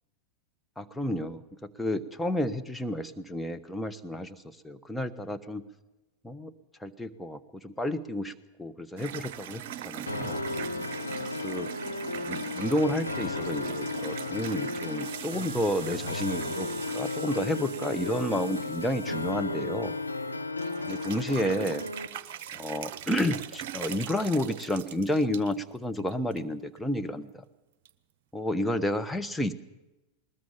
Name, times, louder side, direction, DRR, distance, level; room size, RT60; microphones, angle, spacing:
voice 1, 0.8-5.6 6.2-6.5 6.8-8.3 8.6-10.4 11.4-11.7 12.2-19.9 20.9-21.9 22.5-27.4 28.3-29.5, left 1 dB, 5° left, 7 dB, 1.2 m, -31 dB
sound 1, 9.0-20.3 20.6-25.5 26.0-26.4 26.8-26.9 27.9-28.0, right 10 dB, 50° right, 1.1 m, -41 dB
sound 2, 10.1-22.1, left 2 dB, 85° left, 1.0 m, -34 dB
20.5 x 20.0 x 7.3 m, 1.0 s
figure-of-eight pair, 90°, 0 cm